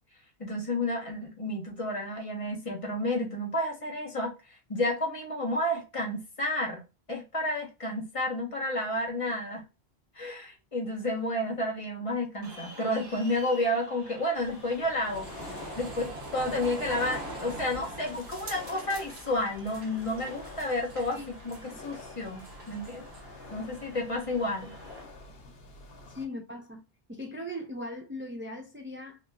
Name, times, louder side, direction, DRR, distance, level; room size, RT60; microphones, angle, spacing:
voice 1, 0.4-4.3 4.7-6.8 7.1-9.6 10.1-15.3 15.8-23.1 23.5-24.7, left 1 dB, 35° left, 1.0 m, -31 dB
sound 1, 12.4-25.0, equal, 60° right, 1.7 m, -51 dB
sound 2, 14.3-26.3, left 3 dB, 65° left, 1.0 m, -48 dB
sound 3, 15.0-23.2, right 2 dB, 75° right, 1.3 m, -43 dB
voice 2, 26.1-26.8 27.1-29.2, left 1 dB, 20° right, 0.3 m, -39 dB
2.9 x 2.9 x 2.3 m
omnidirectional pair, 1.1 m